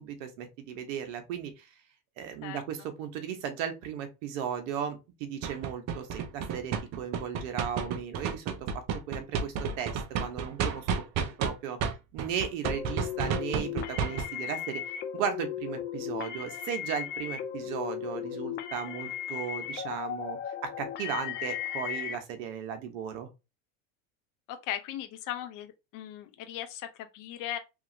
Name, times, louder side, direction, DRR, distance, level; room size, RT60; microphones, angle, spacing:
voice 1, 0.0-1.6 2.2-10.9 11.4-11.8 12.1-14.8 15.1-23.3, right 8 dB, 75° right, 1.0 m, -36 dB
sound 1, 5.4-11.5 11.8-14.2, right 6 dB, 45° right, 0.6 m, -31 dB
sound 2, 12.6-22.2, left 10 dB, 30° left, 0.4 m, -36 dB
voice 2, 24.5-27.6, left 11 dB, 55° left, 0.8 m, -38 dB
2.8 x 2.8 x 2.6 m
supercardioid pair, 120°, 38 cm